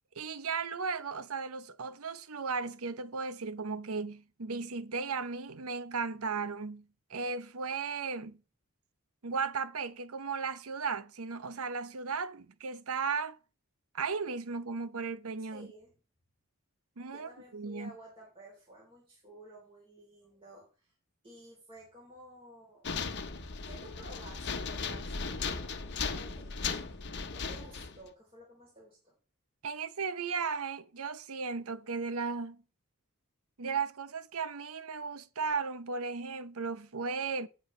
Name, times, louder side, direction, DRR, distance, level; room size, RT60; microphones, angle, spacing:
voice 1, 0.1-8.4 9.2-13.4 13.9-15.7 17.0-17.9 29.6-32.6 33.6-37.5, right 5 dB, 75° right, 0.8 m, -36 dB
voice 2, 15.5-15.9 17.1-20.9 21.2-22.9 23.3-26.8 27.3-29.1, right 1 dB, 25° right, 3.7 m, -53 dB
sound 1, 22.8-28.1, left 5 dB, 50° left, 1.0 m, -37 dB
18.0 x 6.3 x 3.2 m
head